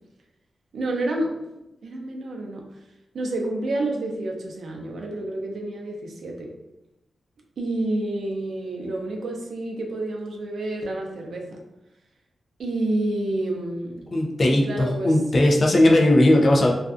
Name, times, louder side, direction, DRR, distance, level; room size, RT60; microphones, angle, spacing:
voice 1, 0.7-1.4 1.8-2.7 3.1-6.5 7.6-11.6 12.6-14.0 14.5-15.2, right 2 dB, 75° right, 1 dB, 0.4 m, -29 dB
voice 2, 14.1-16.7, left 1 dB, 40° left, 0 dB, 0.4 m, -18 dB
2.4 x 2.2 x 2.4 m, 0.93 s
wide cardioid pair, 145°, 0 cm